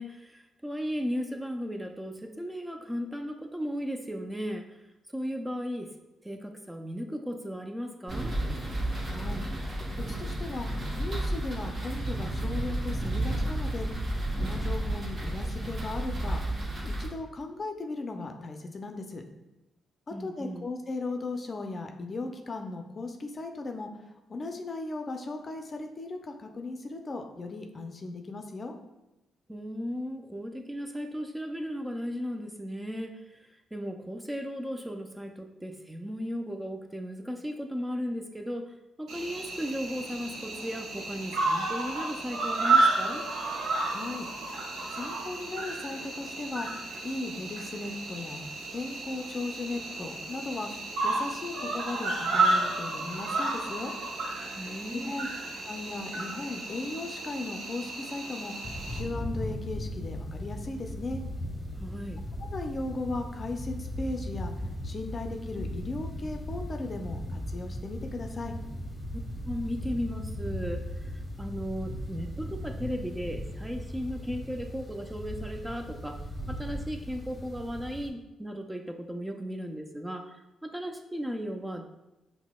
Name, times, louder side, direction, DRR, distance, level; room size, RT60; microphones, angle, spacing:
voice 1, 0.0-4.8 5.1-5.9 6.2-8.4 20.1-20.7 29.5-43.3 54.6-55.1 61.8-62.2 69.4-71.1 71.4-76.2 76.5-81.9, equal, 10° right, 4 dB, 0.4 m, -36 dB
sound 1, 8.1-17.1, right 1 dB, 45° right, 1.0 m, -32 dB
voice 2, 9.0-9.4 10.1-10.7 11.0-13.9 14.4-16.4 16.8-19.2 20.2-23.9 24.3-28.7 43.8-44.3 44.9-46.7 47.0-48.4 48.7-50.7 51.0-53.9 54.9-55.3 55.7-58.5 58.9-61.2 62.5-64.5 64.8-68.5, left 3 dB, 40° left, 4 dB, 0.5 m, -37 dB
Cricket, 39.1-59.0, right 3 dB, 75° right, 0.7 m, -31 dB
sound 2, 58.6-78.1, equal, 15° left, 0.9 m, -37 dB
5.6 x 2.1 x 2.3 m, 0.97 s
supercardioid pair, 55°, 0 cm